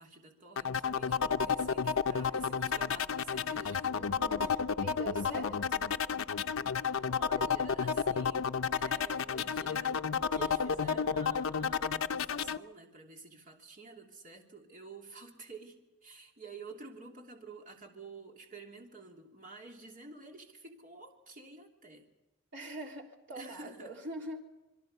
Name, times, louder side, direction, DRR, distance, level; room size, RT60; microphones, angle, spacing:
voice 1, 0.0-4.0 4.4-4.6 6.8-10.0 10.3-22.1 23.3-23.9, right 3 dB, 40° right, 2 dB, 3.1 m, -50 dB
sound 1, 0.6-12.6, left 6 dB, 75° left, 0.7 m, -31 dB
voice 2, 3.9-5.8 22.5-24.4, right 2 dB, 60° right, 1 dB, 3.4 m, -44 dB
27.0 x 22.5 x 5.5 m, 1.0 s
head